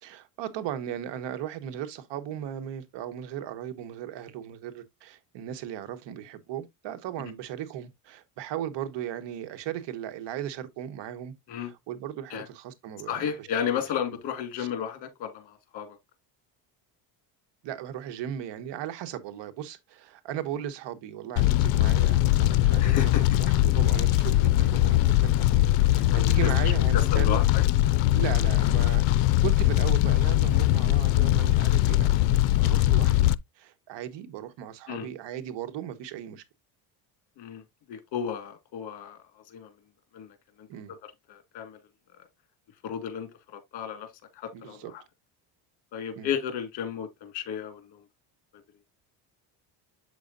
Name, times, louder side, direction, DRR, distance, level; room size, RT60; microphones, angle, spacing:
voice 1, 0.0-13.5 14.6-14.7 17.6-27.5 28.1-33.3 33.6-36.4 40.7-40.9 44.5-44.9 46.2-46.3, right 11 dB, 65° right, 1.4 m, -37 dB
voice 2, 13.1-16.0 22.8-23.4 26.1-27.6 34.9-35.1 37.4-37.6 37.9-39.7 40.1-40.7 41.0-41.8 42.8-44.1 44.4-45.0 45.9-48.0, left 8 dB, 60° left, 2.1 m, -33 dB
Fire, 21.4-33.3, left 15 dB, 75° left, 0.6 m, -21 dB
8.1 x 6.3 x 2.6 m
cardioid pair, 110°, 45 cm